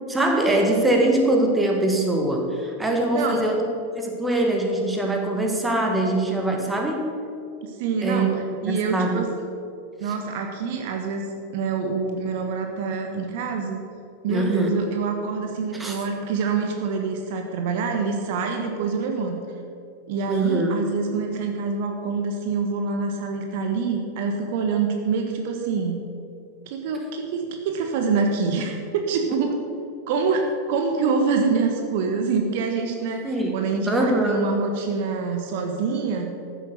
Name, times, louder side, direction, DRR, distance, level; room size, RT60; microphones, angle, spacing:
voice 1, 0.1-7.2 8.0-8.3 8.7-9.2 10.1-10.2 14.3-14.8 15.7-16.0 20.3-20.8 33.2-33.6 33.9-34.5, right 1 dB, 10° right, 1 dB, 2.0 m, -23 dB
voice 2, 3.1-3.4 7.6-9.3 10.0-13.8 14.2-19.4 20.1-26.0 26.7-29.6 30.1-36.3, right 4 dB, 50° right, 4 dB, 1.3 m, -26 dB
14.0 x 7.8 x 6.7 m, 2.5 s
figure-of-eight pair, 90°, 0 cm